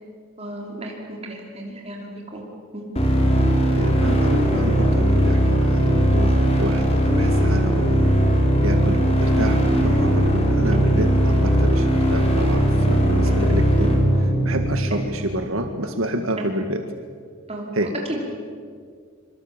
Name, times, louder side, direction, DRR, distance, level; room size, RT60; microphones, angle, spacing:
voice 1, 0.4-2.4 2.7-2.8 10.7-10.9 13.3-13.4 13.7-13.8 14.9-15.0 16.3-16.5 17.5-18.3, right 1 dB, 30° right, -1 dB, 5.3 m, -33 dB
sound 1, 3.0-14.9, equal, 30° left, 4.4 m, -19 dB
voice 2, 3.7-8.0 8.3-16.8 17.7-17.9, right 1 dB, 75° right, 6 dB, 1.9 m, -29 dB
25.0 x 25.0 x 9.0 m, 2.1 s
head